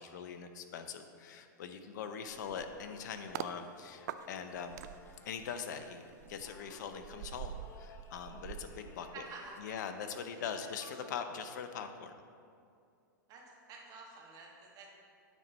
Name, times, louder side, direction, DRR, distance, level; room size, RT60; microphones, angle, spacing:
voice 1, 0.0-4.8 5.3-9.2 9.6-12.1, left 7 dB, 65° left, 8 dB, 0.7 m, -42 dB
sound 1, 2.3-9.8, left 4 dB, 20° left, 0.6 m, -59 dB
sound 2, 2.3-3.6 4.1-9.7 10.0-10.2, right 11 dB, 60° right, 0.4 m, -47 dB
voice 2, 9.1-10.1 10.3-10.4 10.8-10.9 13.3-13.4 13.7-14.9, right 4 dB, 35° right, -2 dB, 1.8 m, -50 dB
9.1 x 4.3 x 5.3 m, 2.4 s
hypercardioid pair, 110°, 11 cm